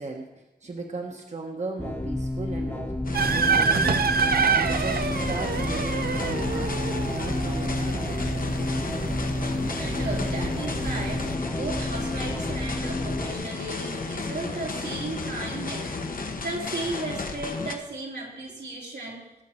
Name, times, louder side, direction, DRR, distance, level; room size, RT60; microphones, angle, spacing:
voice 1, 0.0-3.0 3.2-4.1 4.6-8.7, right 3 dB, 45° right, 1 dB, 1.2 m, -37 dB
sound 1, 1.8-13.3, left 1 dB, 15° left, 1.1 m, -31 dB
sound 2, 3.0-17.7, left 3 dB, 55° left, 1.1 m, -33 dB
sound 3, 3.1-11.4, right 5 dB, 65° right, 0.5 m, -28 dB
voice 2, 9.7-19.3, right 2 dB, 90° right, -4 dB, 3.5 m, -35 dB
18.0 x 7.4 x 4.4 m, 1.0 s
wide cardioid pair, 110°, 17 cm